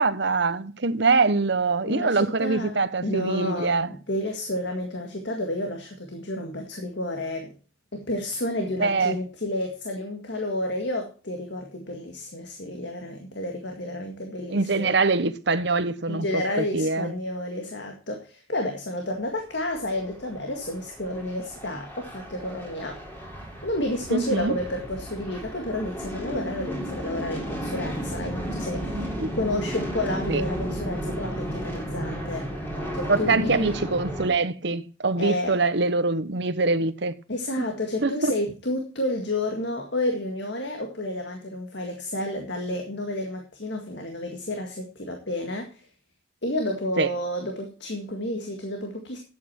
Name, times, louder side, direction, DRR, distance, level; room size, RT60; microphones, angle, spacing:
voice 1, 0.0-3.9 8.8-9.2 14.5-16.4 16.7-17.1 24.1-24.5 28.9-29.3 30.3-30.4 33.1-37.1 37.6-37.7 38.0-38.3 47.0-47.1, right 3 dB, 60° right, 1.0 m, -24 dB
voice 2, 1.8-7.5 7.9-14.9 16.1-23.0 23.6-32.5 32.9-33.8 35.2-35.6 37.3-45.8 46.4-49.2, left 1 dB, 60° left, 2.0 m, -31 dB
sound 1, 19.5-34.3, equal, 10° left, 3.4 m, -34 dB
12.0 x 8.6 x 4.4 m
head